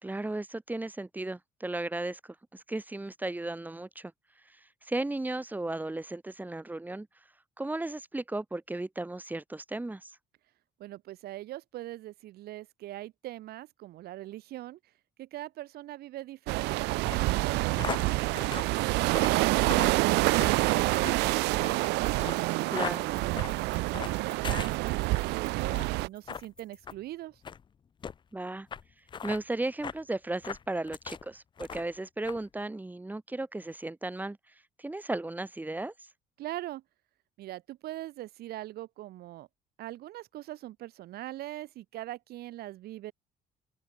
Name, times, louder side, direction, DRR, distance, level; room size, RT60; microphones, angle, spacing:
voice 1, 0.0-4.1 4.8-7.1 7.6-10.1 22.7-23.0 28.3-28.7 29.2-34.4 34.8-35.9, right 2 dB, 10° right, 1.7 m, -35 dB
voice 2, 10.8-14.8 15.2-22.1 22.7-27.4 36.4-36.8 37.4-39.5 39.8-43.1, right 15 dB, 65° right, 0.8 m, -42 dB
sound 1, 16.5-26.1, right 23 dB, 85° right, 0.4 m, -27 dB
sound 2, 17.0-25.3 25.7-26.0 26.3-26.5 26.8-27.0 27.4-27.6 28.0-28.1 28.7-28.8 29.1-29.4 29.8-30.0 30.4-31.2 31.6-32.0 32.3-32.4, left 7 dB, 30° left, 0.5 m, -39 dB
sound 3, 20.3-26.9, left 1 dB, 5° left, 4.1 m, -55 dB
open air
cardioid pair, 110°, 17 cm